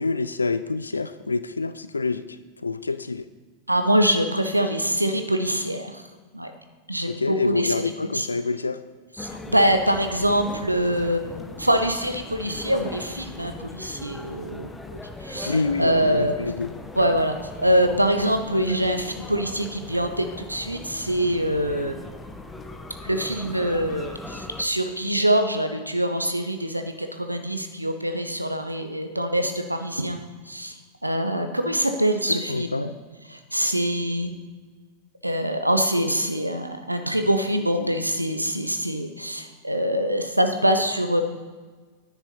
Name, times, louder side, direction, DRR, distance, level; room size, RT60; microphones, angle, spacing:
voice 1, 0.0-2.2 2.6-3.3 7.1-8.8 15.5-16.7 32.5-32.9, left 4 dB, 80° left, 13 dB, 0.3 m, -27 dB
voice 2, 3.7-6.0 6.3-6.5 6.9-7.7 8.1-8.3 9.2-14.7 15.2-16.3 16.9-21.9 23.0-30.2 30.5-32.9 33.3-34.3 35.2-41.2, equal, 85° right, 7 dB, 0.6 m, -24 dB
sound 1, 9.2-24.6, left 2 dB, 10° left, 0.8 m, -39 dB
10.0 x 7.2 x 4.0 m, 1.4 s
figure-of-eight pair, 90°, 0 cm